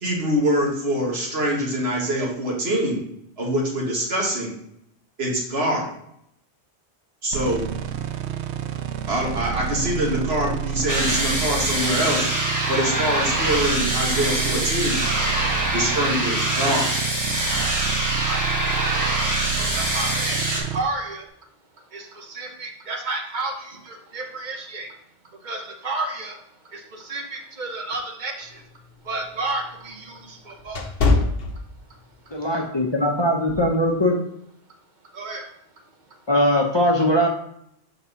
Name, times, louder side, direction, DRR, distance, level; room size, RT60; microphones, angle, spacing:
voice 1, 0.0-3.0 3.4-4.5 5.2-5.9 7.2-7.7 9.1-12.3 12.7-15.0 15.7-16.9, equal, 70° right, -2 dB, 1.9 m, -24 dB
sound 1, 7.3-20.8, right 9 dB, 90° right, 0.9 m, -29 dB
sound 2, 10.9-20.6, right 1 dB, 20° right, 1.2 m, -24 dB
voice 2, 17.9-18.7 19.5-21.3 21.8-25.0 25.3-28.6 29.0-30.9 31.9-32.4 35.1-36.3, right 2 dB, 45° right, 3 dB, 1.1 m, -32 dB
sound 3, 28.5-32.2 32.6-32.9 33.5-33.7, left 3 dB, 65° left, 1.0 m, -25 dB
voice 3, 32.3-34.1 36.3-37.3, equal, 25° left, -1 dB, 0.8 m, -20 dB
4.5 x 3.9 x 5.6 m, 0.74 s
omnidirectional pair, 1.1 m